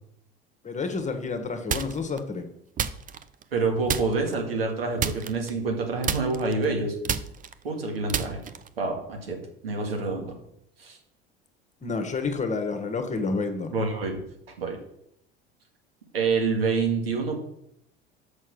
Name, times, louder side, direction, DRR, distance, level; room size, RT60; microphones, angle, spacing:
voice 1, 0.6-2.5 11.8-13.7, left 4 dB, 25° left, 7 dB, 1.4 m, -29 dB
sound 1, 1.7-2.2 2.8-3.6 3.9-4.4 5.0-5.8 6.0-8.8, right 7 dB, 30° right, 0.7 m, -30 dB
voice 2, 3.5-6.9 7.6-8.4 8.8-9.4 9.6-10.3 10.8-11.0 13.7-14.2 14.6-14.8 16.1-17.4, right 4 dB, 85° right, 1 dB, 2.2 m, -27 dB
6.4 x 6.3 x 6.3 m, 0.75 s
hypercardioid pair, 70°, 29 cm